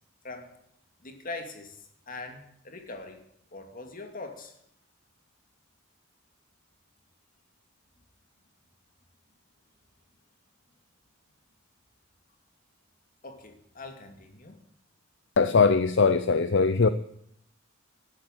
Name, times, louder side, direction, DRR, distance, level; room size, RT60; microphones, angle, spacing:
voice 1, 1.0-1.8 2.1-3.2 3.5-4.5 13.2-14.6, left 3 dB, 40° left, 5 dB, 2.5 m, -42 dB
voice 2, 15.4-16.9, left 4 dB, 60° left, 13 dB, 0.7 m, -21 dB
12.0 x 11.5 x 8.9 m, 0.72 s
head